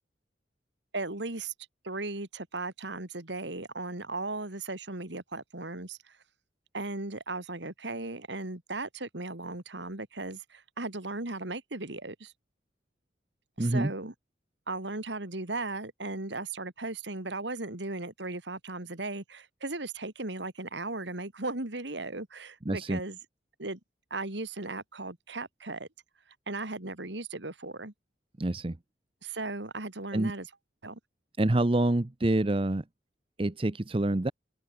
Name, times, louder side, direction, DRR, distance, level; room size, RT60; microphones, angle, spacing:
voice 1, 0.9-1.5 1.8-6.2 6.7-12.3 13.6-14.1 14.7-23.2 23.6-23.8 24.1-25.9 26.5-27.9 29.2-30.5 30.8-31.0, right 2 dB, 70° right, 2.6 m, -37 dB
voice 2, 13.6-13.9 22.7-23.0 28.4-28.8 30.1-30.3 31.4-32.8 33.4-34.3, right 1 dB, 30° right, 0.7 m, -26 dB
open air
head